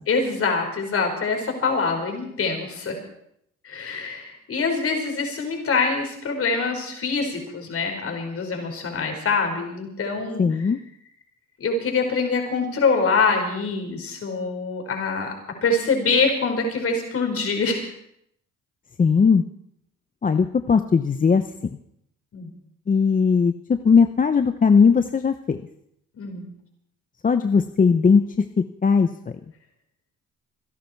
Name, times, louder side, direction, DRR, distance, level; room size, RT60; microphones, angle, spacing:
voice 1, 0.1-3.0 3.6-10.7 11.6-15.3 15.6-17.9 22.3-22.5 26.2-26.5, left 4 dB, 50° left, 3 dB, 5.2 m, -24 dB
voice 2, 10.4-10.8 19.0-19.4 20.2-21.4 22.9-25.6 27.2-28.2 28.8-29.1, left 5 dB, 25° left, 8 dB, 0.8 m, -18 dB
25.5 x 11.5 x 4.6 m, 0.75 s
cardioid pair, 100°, 30 cm